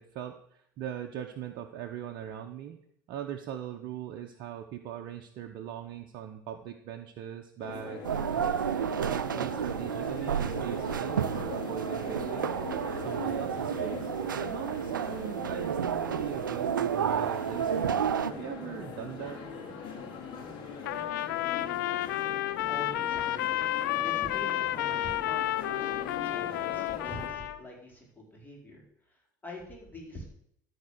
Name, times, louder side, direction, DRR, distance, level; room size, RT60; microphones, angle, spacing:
voice 1, 0.0-2.8 3.1-12.6 13.0-14.1 14.4-19.5, right 10 dB, 55° right, 5 dB, 0.8 m, -40 dB
sound 1, 7.6-27.3, left 5 dB, 50° left, 2.8 m, -41 dB
sound 2, 8.0-18.3, right 8 dB, 85° right, 0.4 m, -31 dB
Trumpet, 20.8-27.6, left 14 dB, 70° left, 0.5 m, -31 dB
voice 2, 22.7-23.5 24.0-30.3, left 1 dB, 15° left, -1 dB, 4.2 m, -45 dB
13.0 x 4.4 x 6.5 m, 0.71 s
figure-of-eight pair, 70°, 11 cm